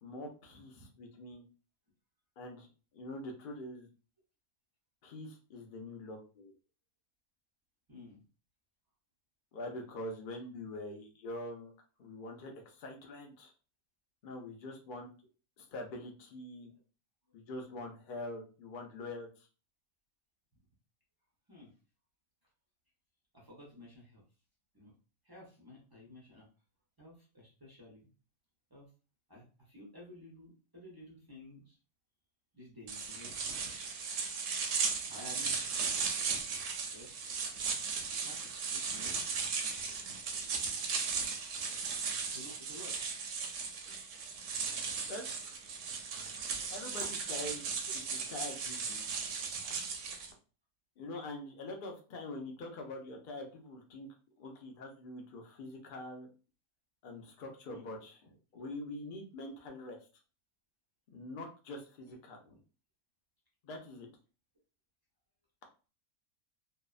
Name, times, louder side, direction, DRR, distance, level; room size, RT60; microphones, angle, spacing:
voice 1, 0.0-1.5 2.4-2.7 2.9-3.9 5.0-6.5 9.5-11.7 12.0-13.5 14.2-15.1 15.6-16.7 17.3-19.5 45.1-45.5 46.7-47.8 48.3-49.0 51.0-54.1 54.4-56.3 57.0-58.2 58.5-60.0 61.1-62.6 63.6-64.1, left 1 dB, 80° left, 2 dB, 0.4 m, -44 dB
voice 2, 0.5-0.9 7.9-8.2 21.5-21.7 23.3-24.2 24.7-25.0 25.2-26.5 27.0-28.1 28.7-28.9 29.3-31.8 32.5-33.4 34.6-34.8 35.1-35.8 36.6-37.4 38.2-39.5 42.1-43.0 44.1-44.3 57.7-57.9 58.5-58.7 59.6-59.7 62.1-62.2, left 1 dB, 35° right, -4 dB, 0.3 m, -53 dB
sound 1, 32.9-50.3, right 5 dB, 70° right, 0.8 m, -36 dB
2.7 x 2.1 x 2.3 m, 0.36 s
omnidirectional pair, 1.5 m